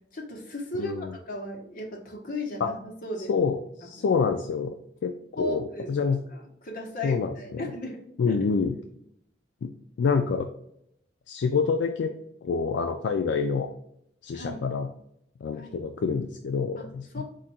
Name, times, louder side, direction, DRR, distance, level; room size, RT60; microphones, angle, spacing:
voice 1, 0.1-2.8 3.0-3.3 3.8-4.2 5.4-5.9 6.3-8.4 14.3-14.6 15.6-15.8 16.8-16.9 17.1-17.2, left 1 dB, 50° left, 0 dB, 1.1 m, -36 dB
voice 2, 0.8-1.1 2.6-2.7 3.3-4.8 5.0-5.1 5.4-6.2 7.0-7.6 8.2-8.8 9.6-9.7 10.0-10.5 11.3-12.1 12.4-13.7 14.2-14.9 15.4-17.2, left 5 dB, 70° left, 5 dB, 0.3 m, -27 dB
4.4 x 2.5 x 4.1 m, 0.75 s
head